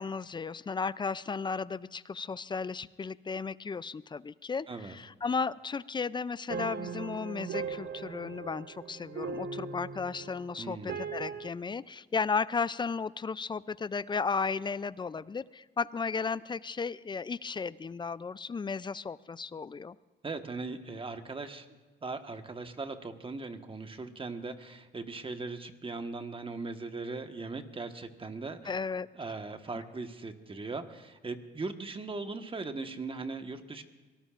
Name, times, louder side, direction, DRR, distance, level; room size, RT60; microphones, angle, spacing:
voice 1, 0.0-20.0 28.6-29.1, left 5 dB, 25° left, 18 dB, 0.4 m, -34 dB
sound 1, 6.5-11.5, right 5 dB, 55° right, 0.9 m, -39 dB
voice 2, 10.6-11.0 20.2-21.7 22.0-28.7 29.1-33.8, right 3 dB, 25° right, 7 dB, 1.4 m, -39 dB
25.0 x 19.0 x 2.5 m, 1.3 s
cardioid pair, 90°, 20 cm